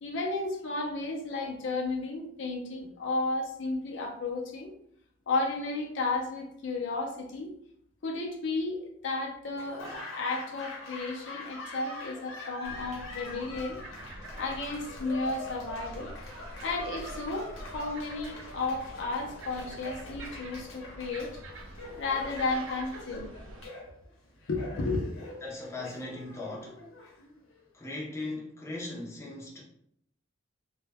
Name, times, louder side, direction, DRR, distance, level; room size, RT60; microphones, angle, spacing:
voice 1, 0.0-4.7 5.3-7.5 8.0-13.8 14.4-16.1 16.6-21.4 22.0-23.3 24.5-25.0, left 3 dB, 65° left, 1 dB, 0.5 m, -33 dB
Laughter / Applause, 9.5-27.6, left 2 dB, 90° left, 0.8 m, -44 dB
sound 1, 12.6-23.7, right 2 dB, 85° right, 0.5 m, -46 dB
voice 2, 25.4-26.8 27.7-29.6, left 2 dB, 15° left, -4 dB, 0.5 m, -38 dB
2.1 x 2.1 x 3.3 m, 0.69 s
head